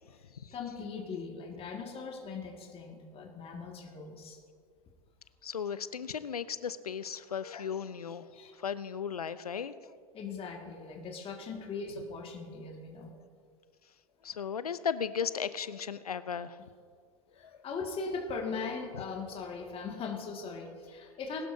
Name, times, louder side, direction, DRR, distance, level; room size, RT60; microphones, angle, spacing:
voice 1, 0.1-4.4 8.3-8.5 10.1-13.1 17.3-21.5, left 4 dB, 30° left, 1 dB, 2.0 m, -40 dB
voice 2, 5.4-8.3 8.6-9.8 14.2-16.6 17.4-17.6, left 7 dB, 90° left, 15 dB, 0.6 m, -36 dB
21.0 x 12.0 x 2.7 m, 2.1 s
hypercardioid pair, 95°, 19 cm